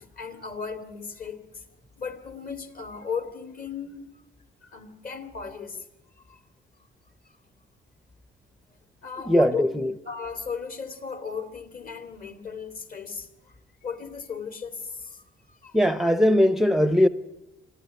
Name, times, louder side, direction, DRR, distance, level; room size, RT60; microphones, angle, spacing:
voice 1, 0.0-1.6 2.0-4.1 4.6-5.8 6.3-6.4 9.0-9.6 10.1-13.5 13.8-15.2 15.5-15.8, left 5 dB, 45° left, 2.8 m, -36 dB
voice 2, 9.2-9.9 15.7-17.1, equal, ahead, 0.7 m, -20 dB
24.0 x 15.0 x 9.2 m
cardioid pair, 90°, 20 cm